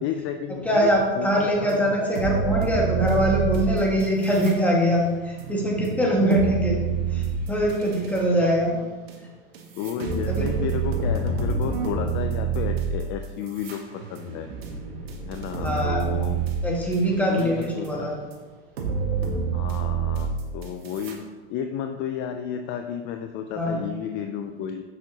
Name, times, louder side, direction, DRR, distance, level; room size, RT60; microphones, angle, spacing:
voice 1, 0.0-1.9 6.0-6.4 8.7-9.0 9.7-14.5 15.3-16.4 16.9-18.1 19.5-21.2 21.5-24.8, left 8 dB, 40° left, 6 dB, 0.5 m, -32 dB
voice 2, 0.6-6.8 7.1-8.7 10.3-10.4 15.6-16.1 16.6-18.1 23.6-23.8, equal, 5° left, -3 dB, 1.7 m, -23 dB
sound 1, 1.7-1.8 2.1-4.6 4.9-8.2 9.1-9.2 9.5-17.0 17.4-17.9 18.3-18.4 18.8-21.1, right 5 dB, 85° right, 1.3 m, -28 dB
7.0 x 6.3 x 2.9 m, 1.3 s
hypercardioid pair, 115°, 30 cm